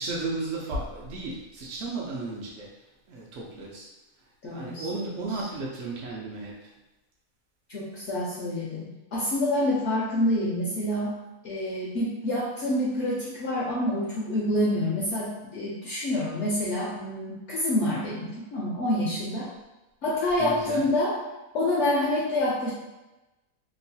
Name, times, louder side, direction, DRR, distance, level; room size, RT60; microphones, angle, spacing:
voice 1, 0.0-2.7 3.1-3.9 4.4-6.5 20.4-20.8, right 3 dB, 65° right, -4 dB, 0.8 m, -34 dB
voice 2, 4.4-5.5 7.7-19.5 20.0-21.2 21.5-22.7, left 1 dB, 65° left, -5 dB, 0.7 m, -27 dB
3.0 x 2.2 x 2.7 m, 1.0 s
omnidirectional pair, 1.6 m